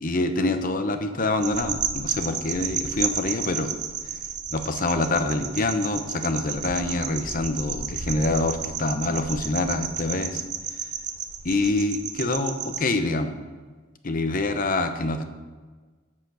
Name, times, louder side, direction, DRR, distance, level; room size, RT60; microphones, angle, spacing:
voice 1, 0.0-3.7 4.5-10.4 11.4-13.3 14.0-15.2, left 2 dB, 40° left, 8 dB, 0.8 m, -26 dB
sound 1, 1.4-12.8, right 7 dB, 35° right, 0.7 m, -32 dB
9.1 x 7.6 x 6.2 m, 1.4 s
head